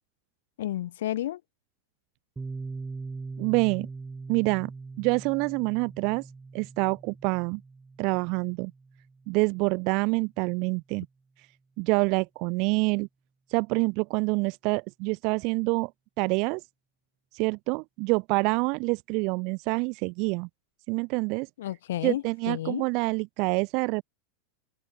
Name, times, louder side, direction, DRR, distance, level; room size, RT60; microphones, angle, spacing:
voice 1, 0.6-1.4 21.6-22.9, left 13 dB, 85° left, 2.7 m, -31 dB
Piano, 2.4-9.8, right 4 dB, 10° right, 4.6 m, -41 dB
voice 2, 3.4-3.9 4.3-4.7 5.0-6.2 6.5-7.6 8.0-8.7 9.3-11.1 11.8-13.1 13.5-15.9 16.2-16.6 17.3-20.5 20.9-21.5 22.0-24.0, right 30 dB, 45° right, 0.4 m, -26 dB
open air
supercardioid pair, 165°, 0 cm